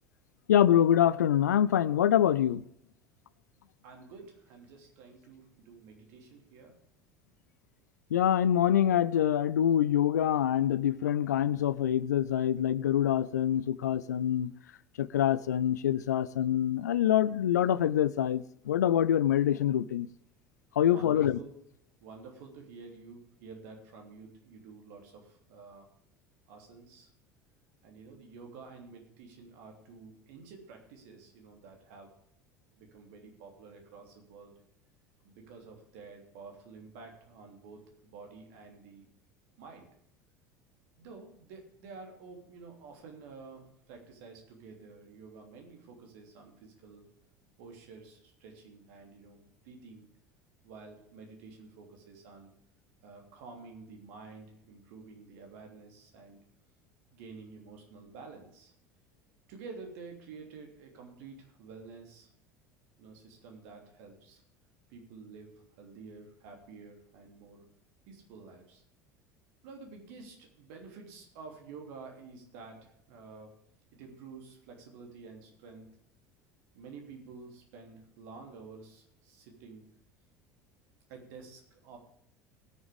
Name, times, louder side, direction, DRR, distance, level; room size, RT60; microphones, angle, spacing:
voice 1, 0.5-2.6 8.1-14.5 15.0-20.1 20.8-21.4, left 10 dB, 70° left, 18 dB, 0.5 m, -25 dB
voice 2, 3.8-6.8 20.9-21.6 22.0-25.9 26.5-27.1 27.8-32.1 32.7-34.6 35.2-39.1 39.6-39.9 41.0-47.0 47.6-50.1 50.6-52.5 53.0-56.4 57.1-58.7 59.5-62.3 63.0-64.4 64.9-67.6 68.1-68.8 69.6-73.6 73.9-75.9 76.7-80.0 81.1-82.0, right 4 dB, 60° right, 3 dB, 3.1 m, -50 dB
18.5 x 7.1 x 5.0 m, 0.71 s
figure-of-eight pair, 70°, 9 cm